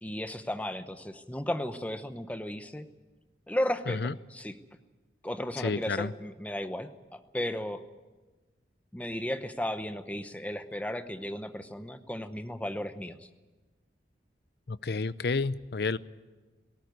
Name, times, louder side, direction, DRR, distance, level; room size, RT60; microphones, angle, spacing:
voice 1, 0.0-2.9 3.5-4.5 5.2-7.8 8.9-13.3, left 1 dB, 10° left, 9 dB, 0.8 m, -35 dB
voice 2, 5.6-6.1 14.7-16.0, left 4 dB, 60° left, 17 dB, 0.6 m, -30 dB
18.5 x 18.0 x 9.5 m, 1.3 s
head